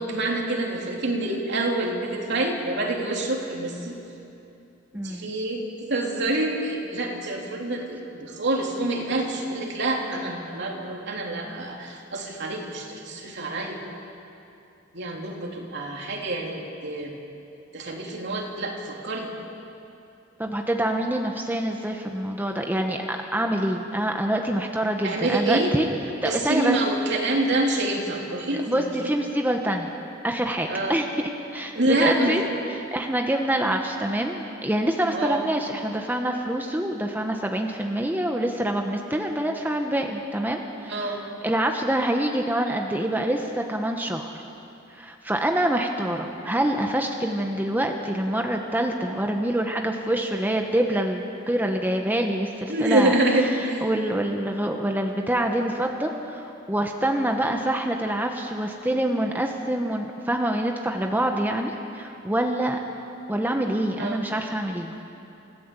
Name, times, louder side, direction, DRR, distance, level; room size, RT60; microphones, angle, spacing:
voice 1, 0.0-4.0 5.0-13.8 14.9-17.1 17.7-19.3 25.0-25.8 26.2-29.1 30.7-31.0 31.7-32.5 35.1-35.4 40.9-41.2 52.7-53.9 64.0-64.2, right 2 dB, 60° right, 0 dB, 3.2 m, -26 dB
voice 2, 4.9-5.3 20.4-25.9 26.2-26.7 28.7-29.9 30.2-31.1 31.5-32.4 32.7-41.2 41.4-44.3 44.9-53.1 53.8-62.8 63.3-64.9, right 1 dB, 10° right, 2 dB, 1.2 m, -26 dB
28.5 x 15.5 x 8.4 m, 2.8 s
head